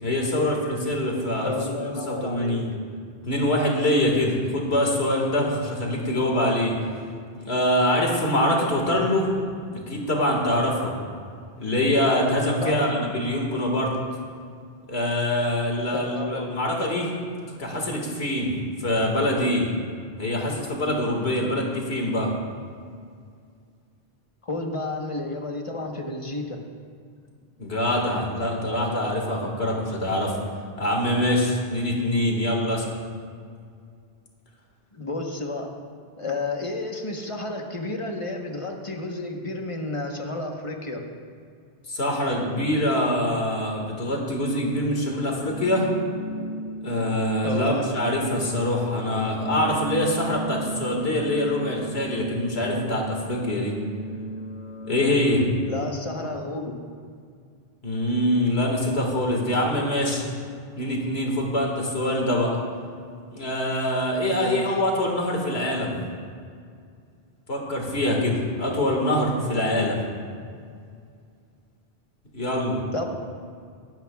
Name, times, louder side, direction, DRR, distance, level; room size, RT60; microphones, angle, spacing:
voice 1, 0.0-2.7 3.2-6.8 7.4-9.3 9.9-10.9 11.6-13.9 14.9-17.1 17.6-18.5 18.8-19.7 20.2-22.3 27.6-30.4 30.8-32.9 41.9-45.9 46.8-53.8 54.8-55.5 57.8-60.2 60.8-62.6 63.3-66.0 67.5-70.0 72.3-72.8, left 1 dB, 80° left, 0 dB, 2.1 m, -24 dB
voice 2, 1.4-2.6 12.6-13.0 15.9-16.4 24.4-26.6 34.9-35.7 36.2-41.0 47.4-47.8 55.7-56.7 64.3-64.6 72.9-73.1, left 2 dB, 30° left, 2 dB, 1.1 m, -31 dB
sound 1, 45.4-55.4, right 2 dB, 50° left, 0.8 m, -35 dB
17.0 x 12.0 x 2.3 m, 2.2 s
omnidirectional pair, 1.1 m